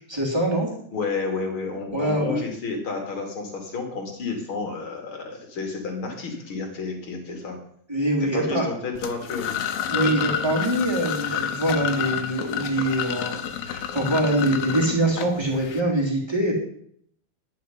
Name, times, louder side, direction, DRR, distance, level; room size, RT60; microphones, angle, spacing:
voice 1, 0.1-0.7 1.9-2.4 7.9-8.7 9.9-16.5, right 1 dB, 10° right, -2 dB, 2.3 m, -24 dB
voice 2, 0.9-7.6 8.3-9.5 9.9-10.1, left 4 dB, 40° left, 4 dB, 2.5 m, -31 dB
sound 1, 9.0-15.8, left 9 dB, 75° left, 2.8 m, -29 dB
11.0 x 9.8 x 5.6 m, 0.64 s
omnidirectional pair, 4.6 m